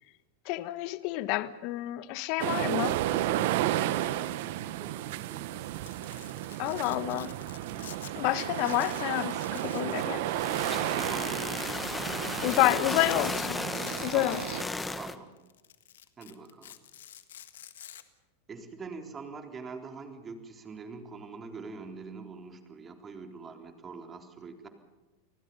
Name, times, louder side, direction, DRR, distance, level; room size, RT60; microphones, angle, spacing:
voice 1, 0.4-3.0 6.6-7.3 8.2-10.3 12.4-13.6 14.0-14.4, left 16 dB, 55° left, 1.2 m, -29 dB
sound 1, 2.4-14.6, right 14 dB, 65° right, 1.2 m, -33 dB
voice 2, 4.6-5.9 7.7-8.1 10.3-11.5 12.1-12.9 14.1-14.4 15.0-15.3 16.2-16.8 18.5-24.7, right 4 dB, 25° right, 3.8 m, -44 dB
Domestic sounds home sounds, 5.6-8.1 8.4-9.9 10.2-10.3 10.9-11.9 12.4-12.6 12.9-13.4 13.8-15.0 15.4-18.0, left 11 dB, 80° left, 1.7 m, -49 dB
sound 2, 10.0-15.2, left 3 dB, 10° left, 1.6 m, -35 dB
29.5 x 20.0 x 5.6 m
hypercardioid pair, 105°, 0 cm